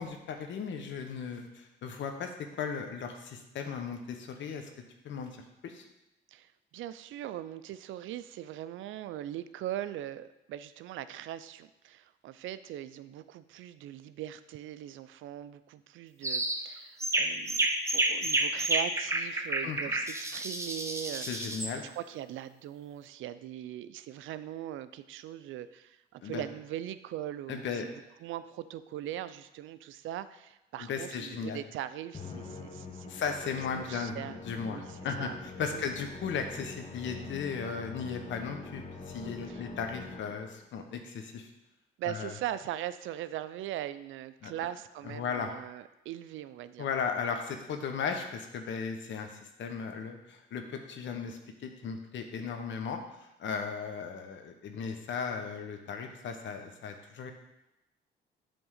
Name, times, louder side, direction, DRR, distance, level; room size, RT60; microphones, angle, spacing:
voice 1, 0.0-2.3 2.6-4.7 5.0-5.8 19.6-19.8 21.2-21.8 26.2-26.4 27.5-27.9 30.8-31.6 33.1-41.5 42.0-42.3 44.4-44.5 45.0-45.5 46.8-57.3, left 6 dB, 70° left, 5 dB, 1.1 m, -36 dB
voice 2, 6.3-17.7 17.9-21.3 21.8-27.9 28.2-33.1 33.9-35.4 35.7-35.9 39.5-39.6 42.0-46.9, right 12 dB, 80° right, 14 dB, 0.5 m, -40 dB
sound 1, 16.2-16.6 17.0-21.7, right 2 dB, 15° right, 0.8 m, -30 dB
Musical instrument, 32.1-40.7, left 4 dB, 30° left, 1.1 m, -44 dB
7.8 x 3.6 x 6.5 m, 0.93 s
cardioid pair, 90°, 20 cm